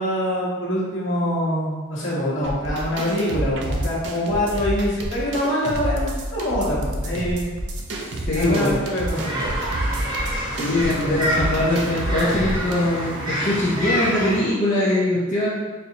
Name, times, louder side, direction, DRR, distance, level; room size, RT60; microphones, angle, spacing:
voice 1, 0.0-7.5 8.3-9.4, equal, 60° left, -6 dB, 1.1 m, -24 dB
sound 1, 2.4-12.7, right 1 dB, 55° right, 0.5 m, -29 dB
voice 2, 8.3-8.8 10.6-15.5, left 1 dB, 35° left, -8 dB, 0.5 m, -22 dB
sound 2, 9.1-14.4, equal, 20° right, 0.7 m, -27 dB
4.2 x 2.7 x 2.7 m, 1.4 s
head